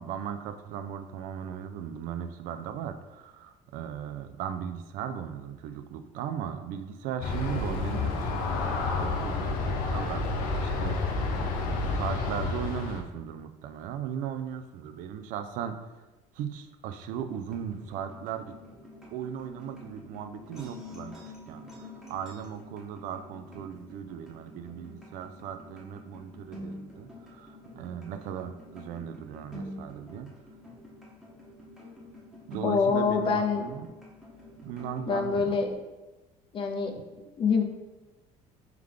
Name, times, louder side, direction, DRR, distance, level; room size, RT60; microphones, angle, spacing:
voice 1, 0.0-11.0 11.9-15.9 16.3-18.5 19.1-21.2 21.5-30.3 32.5-33.9 34.6-35.5 36.9-37.0, right 8 dB, 75° right, 8 dB, 0.4 m, -37 dB
Aircraft, 7.2-13.0, left 3 dB, 80° left, 0.6 m, -30 dB
sound 1, 17.2-35.8, left 1 dB, 5° right, 0.9 m, -47 dB
voice 2, 32.6-33.7 35.1-35.7 36.5-36.9 37.4-37.6, left 5 dB, 40° left, 4 dB, 0.6 m, -25 dB
3.4 x 3.2 x 3.7 m, 1.1 s
cardioid pair, 130°, 14 cm